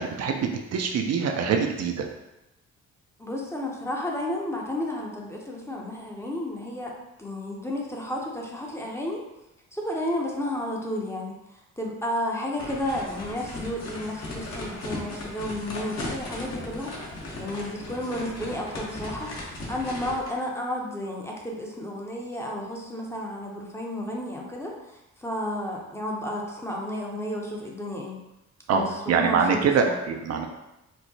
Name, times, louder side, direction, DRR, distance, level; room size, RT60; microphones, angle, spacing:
voice 1, 0.0-2.1 28.7-30.5, right 5 dB, 55° right, 3 dB, 0.4 m, -24 dB
voice 2, 3.2-6.9 7.2-9.2 9.7-11.4 11.8-16.9 17.4-28.2 28.7-29.9, left 1 dB, 10° left, -2 dB, 0.6 m, -32 dB
sound 1, 12.6-20.4, left 2 dB, 60° left, 1.0 m, -37 dB
4.5 x 2.1 x 2.7 m, 0.94 s
cardioid pair, 90°, 30 cm